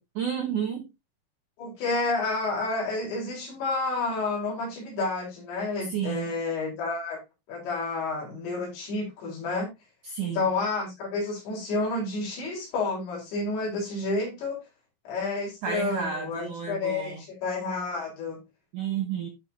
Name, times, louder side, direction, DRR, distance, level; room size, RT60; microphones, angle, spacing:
voice 1, 0.2-0.9 5.9-6.4 10.0-10.5 15.6-17.2 18.7-19.3, right 8 dB, 70° right, 1.9 m, -31 dB
voice 2, 1.6-7.2 7.5-9.7 10.2-14.6 15.1-18.4, left 3 dB, 65° left, 6.5 m, -30 dB
12.5 x 5.7 x 2.8 m
omnidirectional pair, 5.6 m